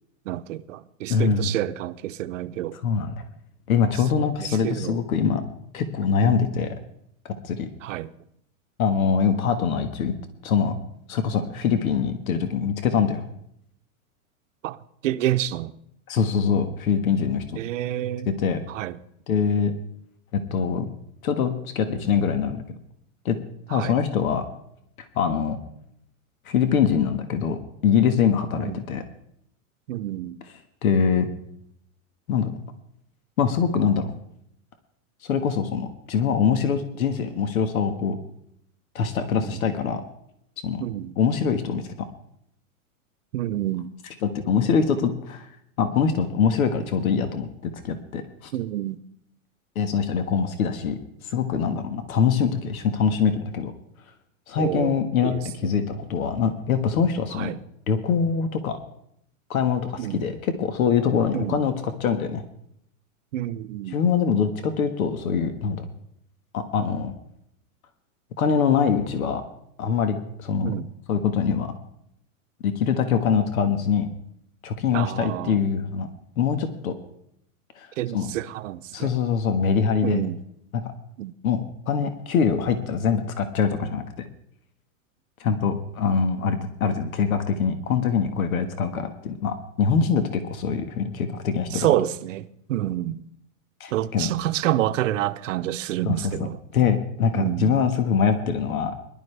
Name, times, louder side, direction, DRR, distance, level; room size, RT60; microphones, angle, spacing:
voice 1, 0.3-2.8 3.9-5.0 6.2-6.5 7.8-8.1 14.6-15.7 17.6-18.3 18.7-19.0 23.7-24.0 28.6-28.8 29.9-30.4 39.3-39.6 40.8-41.1 43.3-43.9 48.5-49.0 54.6-55.0 55.2-55.7 57.3-57.6 60.0-60.3 61.3-61.6 63.3-64.0 70.6-70.9 74.9-75.6 78.0-79.1 80.0-80.4 81.2-81.3 91.7-93.2 93.9-96.6 97.3-97.8, right 13 dB, 65° right, 0.8 m, -28 dB
voice 2, 1.1-1.5 2.8-3.1 3.7-5.4 5.7-6.7 7.2-7.7 8.8-10.1 10.4-10.7 11.1-13.2 16.1-17.6 18.4-18.6 19.3-19.7 20.3-20.9 21.2-22.8 23.2-23.4 23.7-24.4 25.0-25.6 26.4-29.0 30.8-31.3 32.3-32.5 33.4-34.1 35.2-38.2 38.9-40.0 40.6-40.8 41.2-42.1 44.2-45.5 45.8-48.5 49.7-53.7 54.5-55.3 55.6-57.5 57.9-58.8 59.5-62.4 63.9-65.9 66.5-67.1 68.4-69.4 69.8-70.7 71.1-71.7 72.6-74.1 74.6-76.1 76.4-76.9 77.8-77.9 78.1-78.3 78.9-80.2 80.8-80.9 81.4-84.3 85.4-91.9 93.8-94.3 96.0-96.1 96.7-99.0, left 6 dB, 85° left, 1.7 m, -23 dB
21.5 x 12.0 x 3.4 m
supercardioid pair, 160°, 41 cm